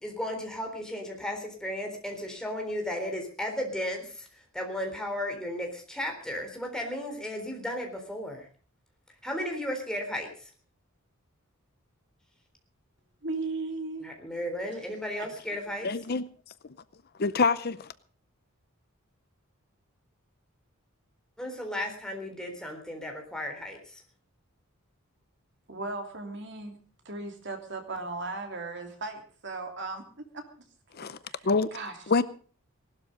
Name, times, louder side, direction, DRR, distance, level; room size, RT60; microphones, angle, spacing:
voice 1, 0.0-4.3 4.5-8.5 9.2-10.5 14.0-15.9 21.4-24.0, left 1 dB, 5° left, 3.7 m, -34 dB
voice 2, 13.2-14.1 15.2-15.3 25.7-26.8 27.0-30.4 31.0-32.0, right 3 dB, 55° right, 2.9 m, -37 dB
voice 3, 15.8-16.2 17.2-17.9 31.0-31.2 31.4-31.7 32.1-32.2, left 4 dB, 45° left, 0.6 m, -25 dB
19.0 x 12.5 x 5.2 m
head